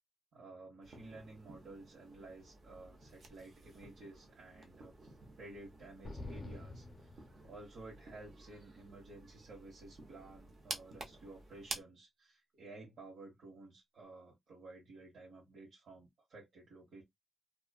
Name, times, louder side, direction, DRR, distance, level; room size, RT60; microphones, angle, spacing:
voice 1, 0.3-5.1 5.4-17.0, right 2 dB, 75° right, 1.0 m, -53 dB
sound 1, 0.8-11.8, right 3 dB, 55° right, 0.7 m, -51 dB
sound 2, 6.0-8.0, left 2 dB, 35° left, 0.5 m, -48 dB
2.6 x 2.3 x 2.2 m
wide cardioid pair, 125°, 0 cm